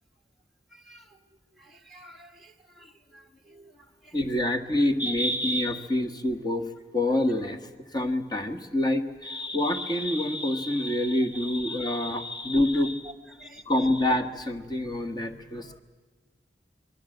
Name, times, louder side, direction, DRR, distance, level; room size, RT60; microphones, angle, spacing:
voice 1, 0.7-1.2 1.5-4.2 5.1-5.2 11.8-11.9 12.7-13.6, right 1 dB, ahead, 4 dB, 1.4 m, -52 dB
voice 2, 4.1-6.6 6.9-7.6 7.9-13.1 13.7-15.8, left 1 dB, 25° left, 7 dB, 1.4 m, -26 dB
25.5 x 21.5 x 7.9 m, 1.3 s
head